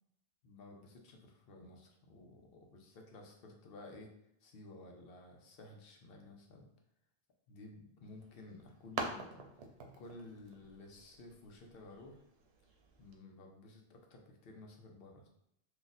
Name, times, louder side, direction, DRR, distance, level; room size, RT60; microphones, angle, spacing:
voice 1, 0.4-4.1 4.4-6.7 7.5-9.5 10.0-12.2 13.0-15.3, left 2 dB, 70° left, 1 dB, 0.8 m, -54 dB
sound 1, 8.0-13.2, right 3 dB, 85° right, 0.8 m, -47 dB
2.5 x 2.4 x 4.0 m, 0.78 s
omnidirectional pair, 1.0 m